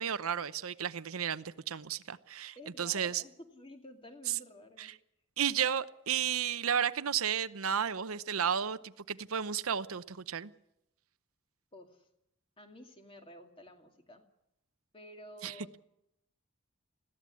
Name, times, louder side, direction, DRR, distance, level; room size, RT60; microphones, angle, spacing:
voice 1, 0.0-3.2 4.3-4.4 4.8-4.9 5.4-10.5 15.4-15.5, right 8 dB, 90° right, 13 dB, 0.8 m, -33 dB
voice 2, 2.5-4.9 11.7-12.1 12.6-14.2 14.9-15.8, left 1 dB, 25° left, 4 dB, 2.4 m, -52 dB
21.5 x 15.5 x 8.4 m, 0.82 s
head